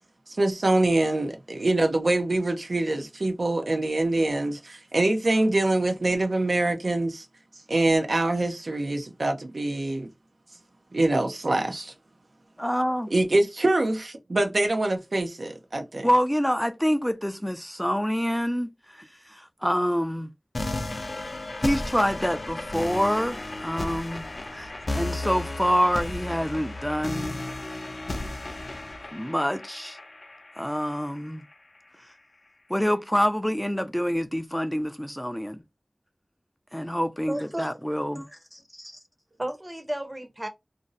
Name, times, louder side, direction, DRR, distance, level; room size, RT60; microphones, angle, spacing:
voice 1, 0.3-7.3 7.7-10.1 10.9-11.9 13.1-16.1, right 2 dB, 85° right, 0.5 m, -24 dB
voice 2, 12.6-13.1 16.0-20.3 21.6-27.4 29.1-30.0 30.6-31.4 32.7-35.6 36.7-39.0, equal, 5° left, 0.3 m, -27 dB
sound 1, 20.5-31.5, left 2 dB, 70° left, 0.5 m, -34 dB
voice 3, 37.3-37.7 39.4-40.5, right 1 dB, 25° right, 0.6 m, -32 dB
2.5 x 2.0 x 3.8 m
wide cardioid pair, 50°, 0 cm